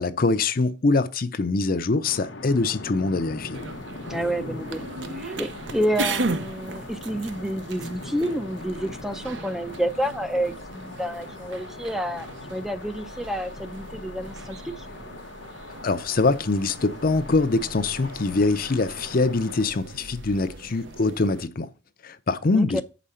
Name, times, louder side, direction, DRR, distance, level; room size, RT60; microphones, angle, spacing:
voice 1, 0.0-3.6 15.8-21.7 22.0-22.8, left 3 dB, 50° left, 0.6 m, -23 dB
sound 1, 2.0-19.6, left 2 dB, 70° left, 1.0 m, -41 dB
sound 2, 3.5-21.5, right 3 dB, 70° right, 0.7 m, -37 dB
voice 2, 4.1-4.8 5.1-14.9 22.5-22.8, equal, ahead, 0.5 m, -29 dB
7.2 x 5.1 x 5.6 m
head